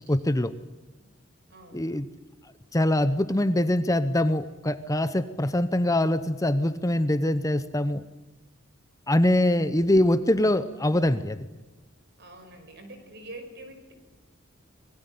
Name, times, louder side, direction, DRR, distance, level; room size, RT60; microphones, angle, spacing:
voice 1, 0.1-0.5 1.7-2.1 2.7-8.0 9.1-11.4, left 1 dB, 15° left, 12 dB, 0.8 m, -23 dB
voice 2, 1.5-1.9 12.2-13.9, right 1 dB, 55° right, 7 dB, 5.2 m, -45 dB
26.0 x 21.0 x 9.6 m, 1.1 s
head